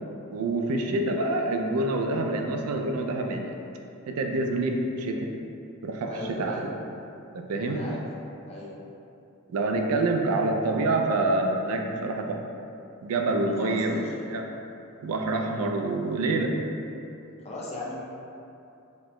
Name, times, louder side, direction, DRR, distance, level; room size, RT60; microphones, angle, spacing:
voice 1, 0.3-3.6 4.1-5.3 5.8-6.7 7.3-7.9 9.5-12.4 13.0-14.0 14.3-14.5 15.0-16.6, right 2 dB, 75° right, 3 dB, 0.4 m, -27 dB
voice 2, 6.1-6.7 7.6-8.0 8.4-8.7 13.6-14.1 17.4-17.9, left 1 dB, 30° left, -5 dB, 0.6 m, -37 dB
4.2 x 2.1 x 2.9 m, 2.7 s
head